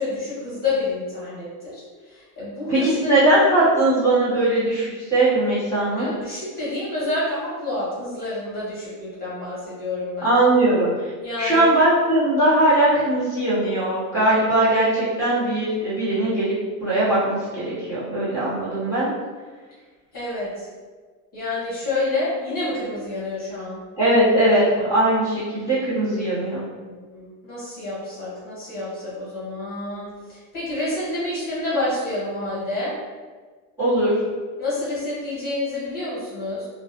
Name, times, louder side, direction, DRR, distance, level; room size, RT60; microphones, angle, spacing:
voice 1, 0.0-1.8 2.1-3.1 6.0-10.3 11.2-11.7 20.1-20.7 21.3-23.8 26.8-32.9 34.6-36.7, left 2 dB, 20° left, -9 dB, 1.2 m, -28 dB
voice 2, 2.7-6.1 10.2-10.9 11.4-16.5 16.8-19.1 24.0-26.7 33.8-34.1, right 1 dB, 5° right, -11 dB, 0.9 m, -20 dB
2.2 x 2.0 x 2.8 m, 1.4 s
supercardioid pair, 130°, 42 cm